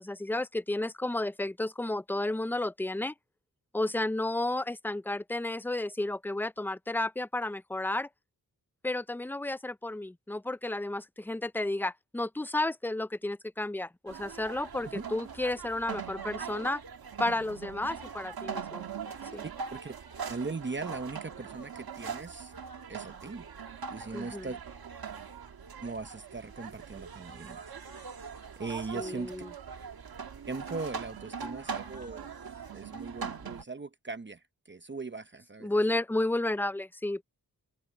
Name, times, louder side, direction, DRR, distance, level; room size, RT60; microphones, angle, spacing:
voice 1, 0.0-3.1 3.7-8.1 8.8-16.8 17.2-18.8 19.3-19.4 24.1-24.5 28.9-29.5 35.6-37.2, left 2 dB, 5° left, 0.5 m, -32 dB
sound 1, 14.1-33.6, right 6 dB, 75° right, 1.7 m, -41 dB
voice 2, 19.4-19.9 20.3-22.5 22.9-23.4 23.9-24.6 25.8-27.7 28.6-29.3 30.5-32.3 32.7-35.7, right 3 dB, 30° right, 0.9 m, -39 dB
wide cardioid pair, 85°, 37 cm